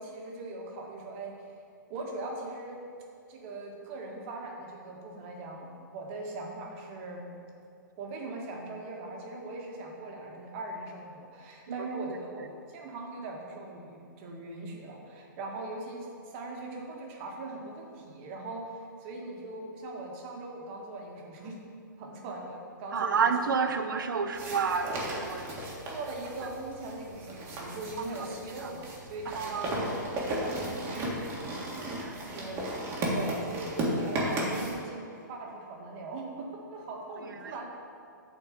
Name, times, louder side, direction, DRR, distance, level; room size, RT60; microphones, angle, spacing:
voice 1, 0.0-1.3 1.9-2.8 3.3-7.3 8.0-18.6 19.0-21.6 22.0-23.3 23.6-23.8 25.8-31.8 32.3-32.6 33.1-37.6, right 2 dB, 40° right, 0 dB, 1.6 m, -40 dB
voice 2, 22.9-25.5 28.6-28.7 29.3-29.7 31.9-32.5 37.4-37.5, right 5 dB, 80° right, 8 dB, 0.8 m, -30 dB
sound 1, 24.3-34.7, right 1 dB, 25° right, 1.8 m, -35 dB
8.2 x 4.5 x 6.6 m, 2.5 s
hypercardioid pair, 140°, 11 cm